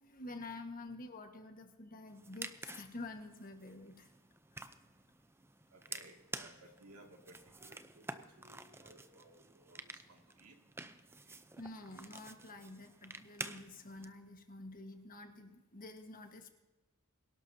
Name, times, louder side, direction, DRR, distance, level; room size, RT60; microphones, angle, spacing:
voice 1, 0.0-4.1 11.6-16.5, left 2 dB, 40° left, 5 dB, 1.5 m, -49 dB
sound 1, 2.1-14.0, right 3 dB, 10° right, 0.6 m, -50 dB
voice 2, 5.7-10.6, right 2 dB, 80° right, 3 dB, 2.3 m, -60 dB
23.5 x 11.5 x 2.8 m, 1.2 s
head